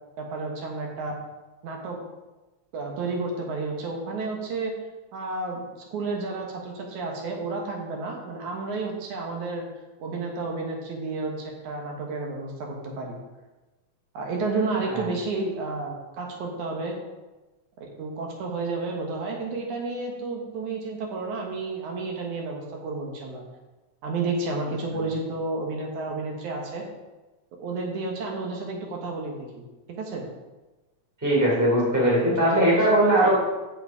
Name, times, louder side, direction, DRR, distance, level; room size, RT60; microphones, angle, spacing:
voice 1, 0.2-1.2 1.6-2.0 2.7-4.7 5.1-5.6 5.9-9.7 10.0-13.1 14.1-16.9 18.0-23.4 24.0-26.8 27.6-29.6 30.0-30.3 31.9-32.6, right 3 dB, 75° right, 0 dB, 2.8 m, -31 dB
voice 2, 31.2-33.4, right 1 dB, 5° right, -5 dB, 2.5 m, -20 dB
8.9 x 8.0 x 4.8 m, 1.1 s
omnidirectional pair, 3.5 m